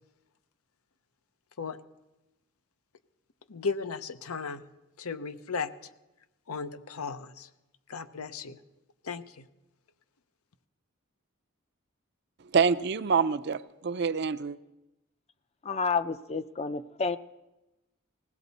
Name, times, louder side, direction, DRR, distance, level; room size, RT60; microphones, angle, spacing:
voice 1, 3.5-4.6 5.0-5.7 6.5-7.5 7.9-8.6 9.0-9.4, left 5 dB, 85° left, 12 dB, 0.7 m, -35 dB
voice 2, 12.5-14.6, right 5 dB, 50° right, 13 dB, 0.5 m, -26 dB
voice 3, 15.6-17.2, left 4 dB, 30° left, 12 dB, 0.5 m, -30 dB
20.5 x 16.5 x 4.1 m, 0.99 s
head